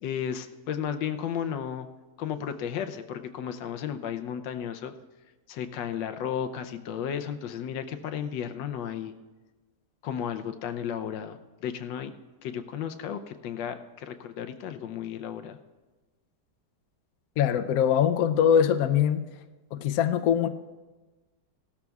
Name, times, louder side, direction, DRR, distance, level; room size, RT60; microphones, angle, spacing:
voice 1, 0.0-1.9 2.2-4.9 5.5-9.1 10.0-12.1 12.4-15.6, left 8 dB, 85° left, 9 dB, 1.4 m, -34 dB
voice 2, 17.4-19.3 19.7-20.5, left 8 dB, 65° left, 9 dB, 0.9 m, -22 dB
17.0 x 13.0 x 2.3 m, 1.2 s
omnidirectional pair, 1.9 m